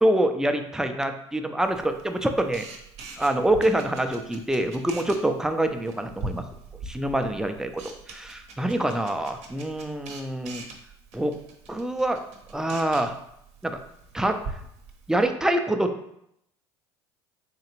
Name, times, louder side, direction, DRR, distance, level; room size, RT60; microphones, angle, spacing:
voice 1, 0.0-2.7 3.2-6.5 6.9-7.7 8.1-10.6 11.1-11.3 11.7-12.2 12.5-13.1 13.6-13.8 14.1-14.4 15.1-15.9, right 1 dB, 5° right, 7 dB, 0.4 m, -25 dB
Camera, 1.6-15.3, right 3 dB, 60° right, 0.7 m, -43 dB
3.7 x 3.2 x 2.9 m, 0.76 s
hypercardioid pair, 75°, 13 cm